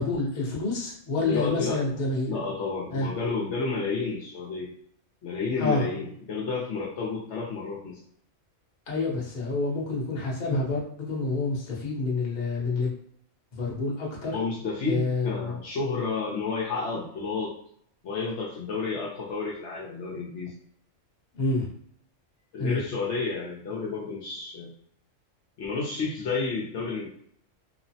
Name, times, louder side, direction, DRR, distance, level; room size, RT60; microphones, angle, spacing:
voice 1, 0.0-2.3 2.9-3.1 5.6-5.8 8.9-12.9 13.5-14.4 14.9-15.5 21.3-21.7 22.6-22.8, left 3 dB, 40° left, -4 dB, 0.8 m, -28 dB
voice 2, 1.2-1.8 2.3-4.7 5.2-8.0 14.3-17.6 18.0-20.6 22.5-24.7 25.6-27.1, left 4 dB, 65° left, -4 dB, 0.9 m, -31 dB
3.0 x 2.0 x 2.7 m, 0.64 s
omnidirectional pair, 1.3 m